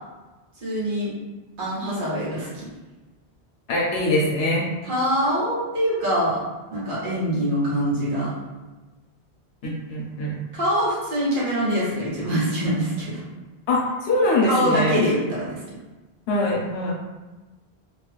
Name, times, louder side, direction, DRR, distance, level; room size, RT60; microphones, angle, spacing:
voice 1, 0.6-1.1 1.6-2.7 4.8-6.4 6.7-8.3 10.5-13.2 14.5-15.6, equal, 55° right, -7 dB, 1.3 m, -24 dB
voice 2, 3.7-4.7 9.6-10.3 13.7-15.0 16.3-16.9, left 1 dB, 75° left, -3 dB, 0.9 m, -23 dB
2.8 x 2.4 x 3.2 m, 1.2 s
omnidirectional pair, 1.1 m